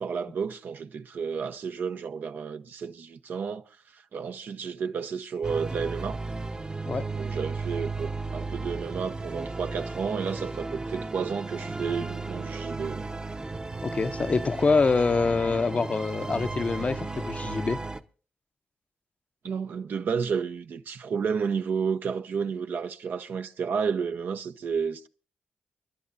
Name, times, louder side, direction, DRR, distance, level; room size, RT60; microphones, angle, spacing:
voice 1, 0.0-3.6 3.9-6.2 7.1-13.0 19.4-25.1, right 6 dB, 70° right, 0.8 m, -31 dB
sound 1, 5.4-18.0, right 3 dB, 25° right, 0.8 m, -34 dB
voice 2, 13.8-17.8, left 4 dB, 45° left, 0.6 m, -25 dB
29.5 x 11.5 x 2.6 m
supercardioid pair, 50°, 3 cm